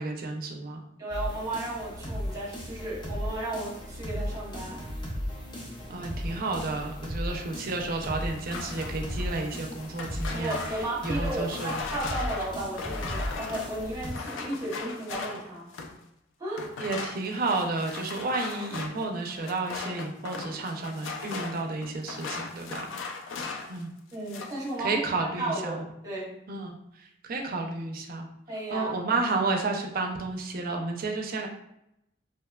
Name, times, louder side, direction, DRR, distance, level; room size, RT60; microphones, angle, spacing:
voice 1, 0.0-0.8 5.9-10.6 11.0-11.8 16.8-22.9 23.7-23.9 24.8-25.8 26.5-26.8 27.3-28.3 28.7-31.5, right 3 dB, 50° right, 2 dB, 0.4 m, -31 dB
voice 2, 1.0-4.8 5.9-6.0 10.3-15.7 16.4-16.7 24.1-26.3 28.5-28.9, right 2 dB, 20° right, -5 dB, 0.8 m, -34 dB
sound 1, 1.1-14.1, equal, 25° left, 0.5 m, -36 dB
sound 2, 8.3-16.0 16.5-23.8 24.1-24.7, left 4 dB, 85° left, 0.3 m, -38 dB
2.7 x 2.1 x 2.2 m, 0.79 s
head